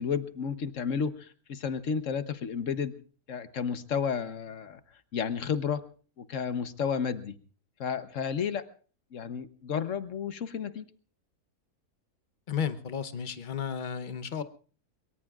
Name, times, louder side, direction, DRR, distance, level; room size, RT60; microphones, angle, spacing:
voice 1, 0.0-2.9 3.3-4.8 5.1-5.8 6.2-7.3 7.8-8.7 9.1-10.8, left 6 dB, 55° left, 11 dB, 1.2 m, -32 dB
voice 2, 12.5-14.4, left 7 dB, 40° left, 10 dB, 0.8 m, -33 dB
23.0 x 23.0 x 2.4 m, 0.39 s
omnidirectional pair, 1.7 m